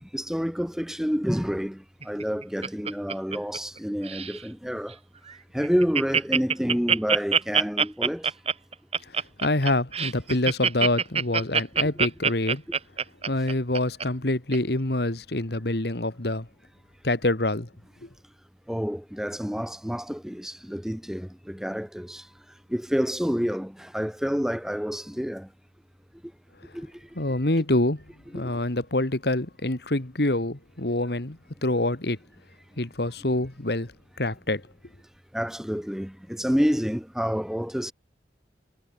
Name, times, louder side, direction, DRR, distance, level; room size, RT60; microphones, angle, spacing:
voice 1, 0.0-5.0 5.5-8.3 18.7-22.3 22.7-25.5 26.7-26.9 27.3-27.4 28.4-28.6 35.3-37.9, equal, 5° right, 1.1 m, -28 dB
Laughter, 2.0-3.8 4.0-4.4 4.9-5.0 5.3-5.4 5.6-14.0 14.5-14.6, right 6 dB, 35° right, 3.2 m, -24 dB
voice 2, 9.4-12.6 13.3-16.5 17.0-17.7 18.0-18.1 27.2-28.0 28.3-32.2 32.8-33.9 34.2-34.6, left 1 dB, 60° left, 1.9 m, -26 dB
head